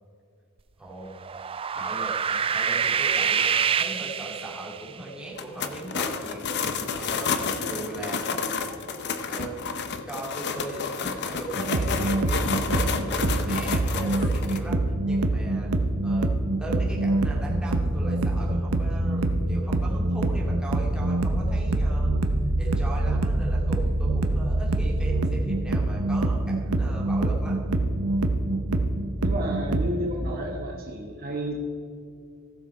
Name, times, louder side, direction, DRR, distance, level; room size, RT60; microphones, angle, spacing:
voice 1, 0.8-1.1 1.7-6.5 7.0-8.4 9.3-9.6 10.1-15.7 16.0-16.3 16.6-22.1 22.6-27.6, right 2 dB, 5° right, -5 dB, 2.3 m, -38 dB
sound 1, 1.1-4.9, right 7 dB, 25° right, 0.3 m, -26 dB
sound 2, 5.3-14.6, left 5 dB, 50° left, 0.7 m, -30 dB
sound 3, 11.6-29.9, right 2 dB, 80° right, 0.8 m, -25 dB
voice 2, 29.2-31.5, right 1 dB, 45° right, 1 dB, 1.1 m, -31 dB
15.5 x 6.9 x 4.4 m, 2.4 s
head